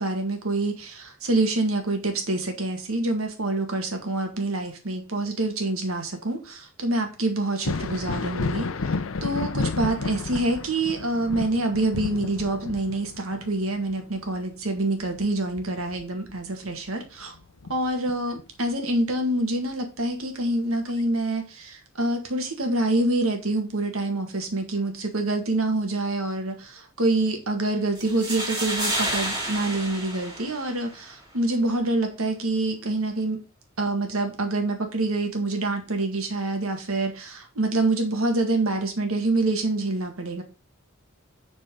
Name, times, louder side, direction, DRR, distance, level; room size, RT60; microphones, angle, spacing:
voice 1, 0.0-8.7 9.2-17.4 17.7-33.4 33.8-40.4, right 2 dB, 90° right, 4 dB, 1.8 m, -26 dB
Thunder, 7.5-16.8 17.2-18.4 20.0-20.1 20.9-21.0, left 3 dB, 75° left, 0.6 m, -32 dB
sound 1, 28.0-31.0, right 1 dB, 20° right, 2.7 m, -30 dB
7.8 x 4.3 x 5.4 m, 0.32 s
head